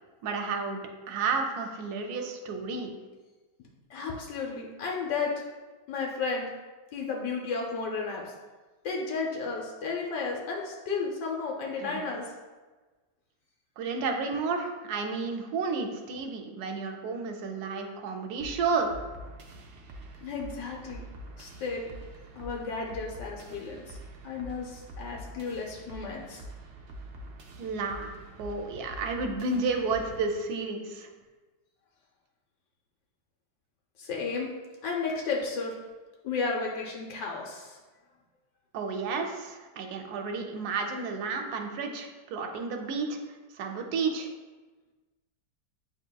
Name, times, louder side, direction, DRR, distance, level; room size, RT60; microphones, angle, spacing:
voice 1, 0.2-2.9 11.8-12.0 13.8-18.9 27.6-31.1 38.7-43.2 43.5-44.3, right 4 dB, 70° right, 4 dB, 1.0 m, -31 dB
voice 2, 3.9-5.4 5.9-6.5 6.9-8.2 8.8-12.3 20.2-21.0 21.4-21.9 22.4-24.0 24.2-26.4 34.0-34.5 34.8-35.7 36.2-37.8, left 4 dB, 85° left, -1 dB, 1.2 m, -33 dB
sound 1, 18.4-30.4, right 1 dB, 85° right, 0.6 m, -45 dB
7.8 x 2.8 x 2.2 m, 1.3 s
omnidirectional pair, 1.9 m